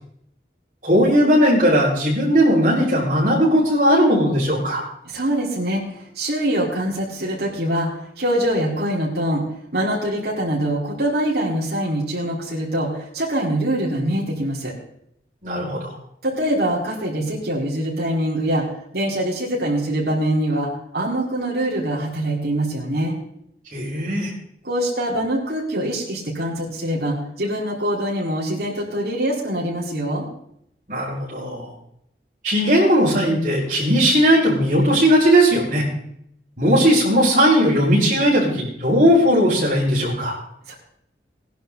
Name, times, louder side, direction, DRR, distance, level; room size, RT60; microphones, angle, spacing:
voice 1, 0.8-4.8 15.4-15.9 23.7-24.3 30.9-31.7 32.4-35.8 36.6-40.3, equal, 45° right, -12 dB, 5.5 m, -17 dB
voice 2, 5.1-5.8 6.2-7.9 8.2-9.4 9.7-12.9 13.1-14.7 16.2-18.6 18.9-20.7 20.9-23.2 24.6-30.2 40.7-40.8, right 1 dB, 65° right, -5 dB, 4.7 m, -23 dB
19.0 x 11.0 x 4.1 m, 0.71 s
head